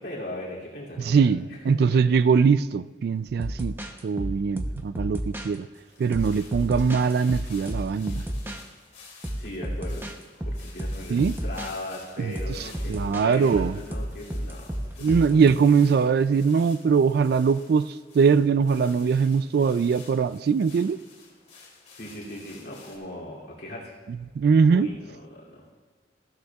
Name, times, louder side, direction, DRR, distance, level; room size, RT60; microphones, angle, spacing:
voice 1, 0.0-2.0 9.4-10.1 10.4-15.5 21.9-23.9 24.7-25.7, left 1 dB, 65° left, -5 dB, 2.7 m, -38 dB
voice 2, 1.0-3.7 4.0-5.7 6.0-8.2 11.1-11.3 12.2-13.8 15.0-21.0 24.4-24.9, right 5 dB, 60° right, 15 dB, 0.3 m, -22 dB
sound 1, 3.3-5.5 6.1-8.6 9.2-10.2 10.4-11.7 12.4-15.5, equal, 10° right, 0.7 m, -32 dB
sound 2, 5.7-23.0, left 4 dB, 40° left, 2.3 m, -51 dB
15.0 x 12.5 x 2.3 m, 1.5 s
head